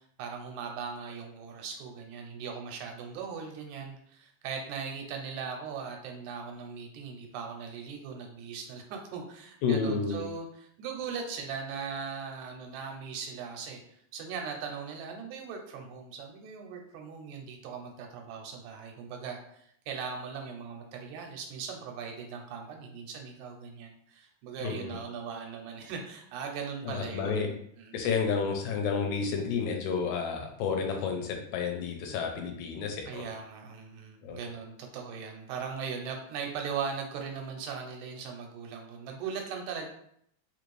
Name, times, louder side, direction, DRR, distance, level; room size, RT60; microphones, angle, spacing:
voice 1, 0.2-28.2 33.1-39.9, right 6 dB, 85° right, 2 dB, 2.1 m, -39 dB
voice 2, 9.6-10.2 24.6-25.0 26.8-27.5 27.9-33.2 34.2-34.4, left 5 dB, 85° left, 3 dB, 2.1 m, -30 dB
4.7 x 2.6 x 3.1 m, 0.68 s
omnidirectional pair, 3.4 m